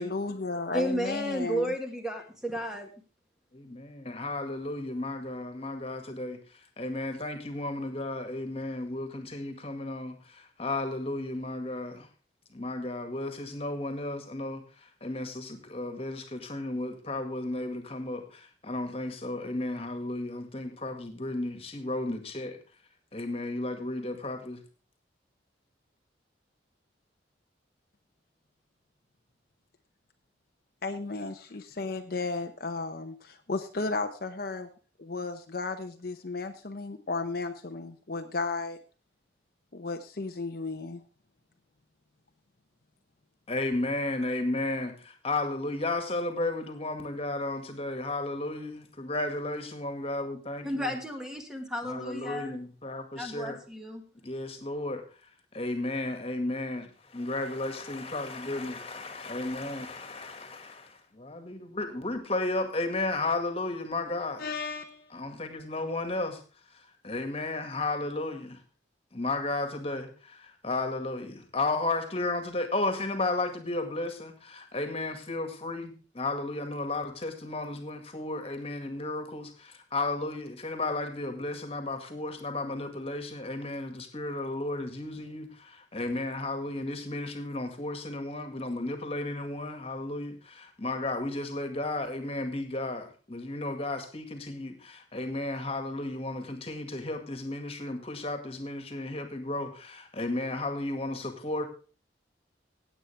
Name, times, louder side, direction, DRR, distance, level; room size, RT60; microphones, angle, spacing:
voice 1, 0.0-1.7 30.8-34.7 35.0-38.8 39.7-41.0 64.4-65.1, left 3 dB, 55° left, 6 dB, 0.8 m, -34 dB
voice 2, 0.7-2.9 50.6-52.6 53.2-54.0, equal, 5° right, 4 dB, 1.7 m, -33 dB
voice 3, 3.5-6.4 6.8-12.1 12.5-14.6 15.0-22.6 23.1-24.6 43.5-50.9 51.8-53.6 54.2-55.0 55.5-64.5 65.1-66.4 67.0-68.6 69.1-101.7, left 2 dB, 30° left, 7 dB, 2.0 m, -33 dB
17.0 x 8.5 x 3.4 m, 0.36 s
head